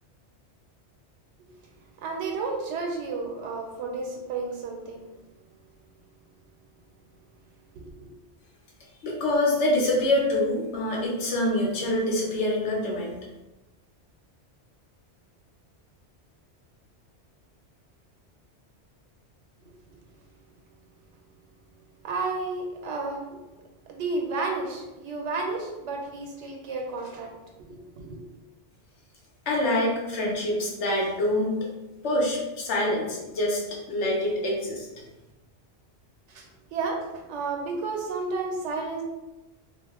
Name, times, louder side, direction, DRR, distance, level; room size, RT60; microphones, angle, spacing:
voice 1, 2.0-5.0 7.7-8.1 19.9-20.0 22.0-23.4 23.9-27.3 27.6-28.2 36.3-39.0, right 3 dB, 80° right, 1 dB, 0.9 m, -32 dB
voice 2, 9.0-13.2 29.5-31.5 32.0-33.6 33.9-34.9, left 1 dB, 75° left, -3 dB, 1.0 m, -25 dB
2.5 x 2.0 x 3.5 m, 1.1 s
omnidirectional pair, 1.2 m